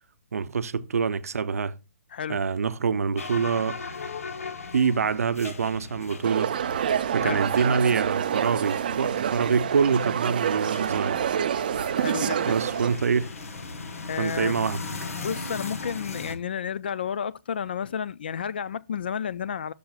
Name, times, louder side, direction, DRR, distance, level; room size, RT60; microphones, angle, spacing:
voice 1, 0.3-1.8 2.3-3.8 4.7-6.5 7.1-11.2 12.5-13.3 14.2-14.8, right 6 dB, 80° right, 0.6 m, -25 dB
voice 2, 2.1-2.4 7.2-7.4 12.0-12.6 14.1-14.6 15.2-19.7, left 7 dB, 40° left, 0.3 m, -31 dB
sound 1, 3.2-16.3, left 3 dB, 70° left, 1.4 m, -38 dB
sound 2, 6.2-13.0, right 9 dB, 35° right, 0.4 m, -27 dB
12.0 x 6.8 x 2.4 m
hypercardioid pair, 170°, 8 cm